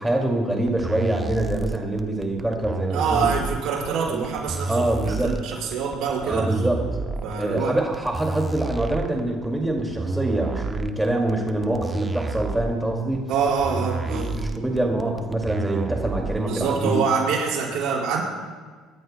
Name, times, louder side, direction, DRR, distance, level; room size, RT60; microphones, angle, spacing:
voice 1, 0.0-3.3 4.1-4.2 4.7-5.4 6.2-6.8 7.4-13.3 14.1-17.0, right 1 dB, 10° right, 0 dB, 2.2 m, -25 dB
sound 1, 0.7-16.6, right 3 dB, 25° right, 0.8 m, -30 dB
voice 2, 2.9-6.4 7.2-7.8 13.3-14.5 16.4-18.2, right 6 dB, 70° right, -3 dB, 5.0 m, -25 dB
26.0 x 13.0 x 2.2 m, 1.5 s
supercardioid pair, 95°, 0 cm